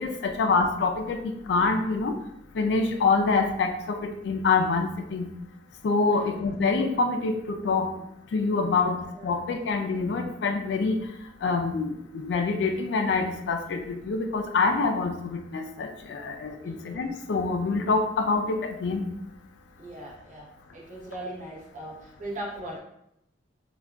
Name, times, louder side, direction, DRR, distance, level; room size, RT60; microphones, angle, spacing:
voice 1, 0.0-2.2 2.5-4.0 4.2-5.3 5.8-7.9 8.3-9.0 9.2-11.0 11.4-19.1, left 4 dB, 65° left, 4 dB, 0.3 m, -26 dB
voice 2, 8.7-9.3 16.6-16.8 19.8-20.5 20.7-22.8, right 1 dB, 45° right, -4 dB, 0.8 m, -39 dB
3.5 x 2.2 x 2.2 m, 0.79 s
head